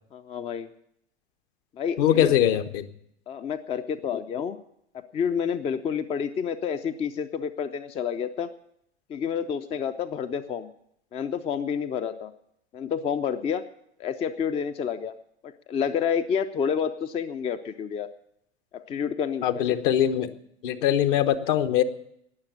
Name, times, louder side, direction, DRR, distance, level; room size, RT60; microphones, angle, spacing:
voice 1, 0.1-0.7 1.8-2.3 3.3-4.6 4.9-8.5 9.1-10.7 11.1-12.3 12.7-13.6 14.0-15.1 15.4-18.1 18.7-19.6, left 7 dB, 20° left, 11 dB, 0.5 m, -29 dB
voice 2, 2.0-2.9 19.4-20.3 20.6-21.8, left 11 dB, 50° left, 11 dB, 1.1 m, -22 dB
19.0 x 7.2 x 8.7 m, 0.76 s
figure-of-eight pair, 85°, 34 cm